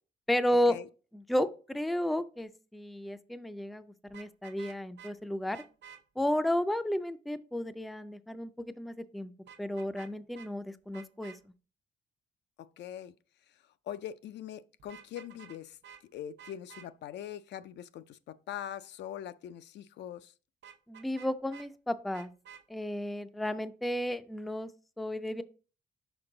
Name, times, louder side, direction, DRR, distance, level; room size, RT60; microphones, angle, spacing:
voice 1, 0.3-0.8 1.1-5.6 6.2-9.3 9.6-11.4 20.9-22.3 22.7-24.7 25.0-25.4, left 1 dB, ahead, 0.3 m, -32 dB
Vehicle horn car horn honking, 4.1-5.1 5.5-6.0 9.5-10.1 10.3-10.5 10.9-11.4 14.8-15.6 15.8-16.0 16.4-16.9 20.6-21.7 22.1-22.6, right 8 dB, 85° right, 0.7 m, -51 dB
voice 2, 12.6-13.1 13.9-15.8 16.1-20.3, left 10 dB, 80° left, 0.4 m, -42 dB
6.1 x 4.4 x 3.8 m
cardioid pair, 135°, 18 cm